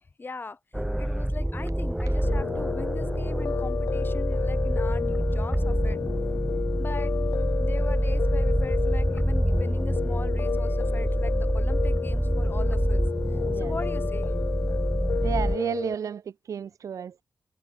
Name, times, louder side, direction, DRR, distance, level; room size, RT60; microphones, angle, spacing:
voice 1, 0.2-0.6 1.0-6.0 6.8-7.1 7.6-13.0 13.5-14.3, left 3 dB, 40° left, 5.6 m, -39 dB
sound 1, 0.7-15.6, right 1 dB, 5° right, 2.4 m, -26 dB
Piano, 2.2-15.9, left 7 dB, 75° left, 0.5 m, -32 dB
voice 2, 15.2-17.1, right 7 dB, 70° right, 0.5 m, -32 dB
cardioid pair, 85°, 6 cm